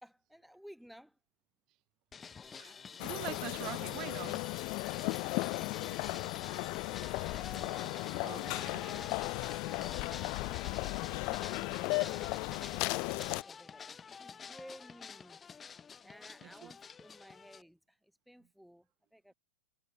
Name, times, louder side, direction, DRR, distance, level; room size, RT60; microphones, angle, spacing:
voice 1, 0.0-1.2 5.0-6.3 8.0-11.0 11.6-15.4 16.0-19.3, equal, ahead, 2.2 m, -57 dB
sound 1, 2.1-17.6, left 6 dB, 15° left, 0.7 m, -48 dB
voice 2, 2.4-2.8 3.0-4.4 7.5-7.7 8.2-9.1 16.4-16.7, right 20 dB, 40° right, 3.7 m, -45 dB
sound 2, 3.0-13.4, left 30 dB, 45° left, 1.3 m, -36 dB
hypercardioid pair, 130°, 0 cm